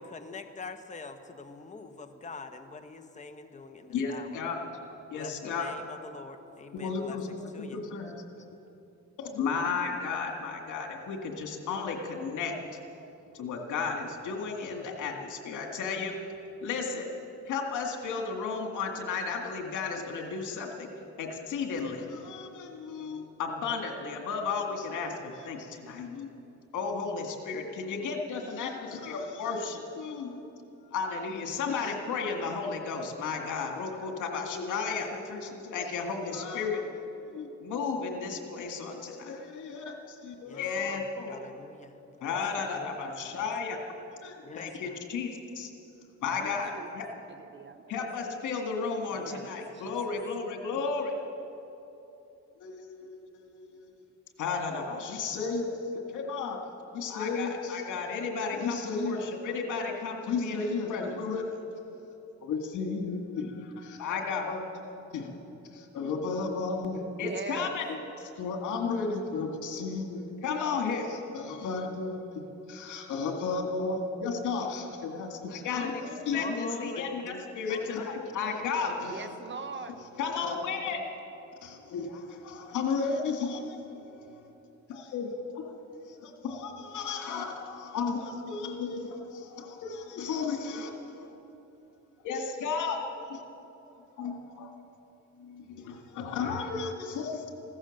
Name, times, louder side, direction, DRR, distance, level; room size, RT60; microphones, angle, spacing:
voice 1, 0.0-4.4 5.1-7.8 40.4-42.4 42.7-43.5 44.4-45.0 76.3-77.1 77.7-77.8, left 4 dB, 25° left, 7 dB, 1.1 m, -45 dB
voice 2, 3.9-4.8 5.1-5.8 6.7-8.2 9.2-12.5 13.3-16.1 16.6-17.1 17.5-20.9 21.2-26.3 26.7-30.4 30.9-36.9 37.3-41.4 42.2-43.8 44.2-45.7 46.2-47.1 47.9-51.2 52.6-53.9 54.4-56.6 56.9-61.5 62.4-65.3 65.7-72.4 72.7-79.3 79.8-79.9 80.2-81.0 81.6-83.8 84.3-84.4 84.9-85.7 86.2-91.3 92.2-93.0 93.3-93.4 94.2-94.7 95.4-97.5, left 4 dB, 80° left, 2 dB, 2.1 m, -33 dB
voice 3, 46.4-47.8 49.1-49.9 67.2-67.7 79.0-80.0, right 5 dB, 40° right, 10 dB, 1.0 m, -42 dB
16.0 x 13.5 x 6.6 m, 2.9 s
cardioid pair, 90°, 30 cm